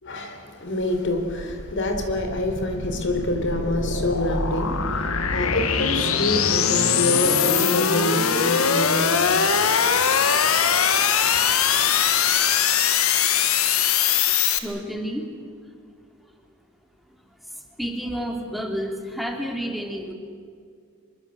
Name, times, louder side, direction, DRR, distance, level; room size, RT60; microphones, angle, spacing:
voice 1, 0.0-9.2, left 1 dB, 60° left, 6 dB, 4.0 m, -26 dB
sound 1, 0.8-14.6, left 7 dB, 85° left, 1.9 m, -22 dB
voice 2, 14.6-15.3 15.6-15.7 16.2-16.3 17.4-20.1, equal, ahead, 2 dB, 3.0 m, -30 dB
25.0 x 23.5 x 7.7 m, 2.2 s
head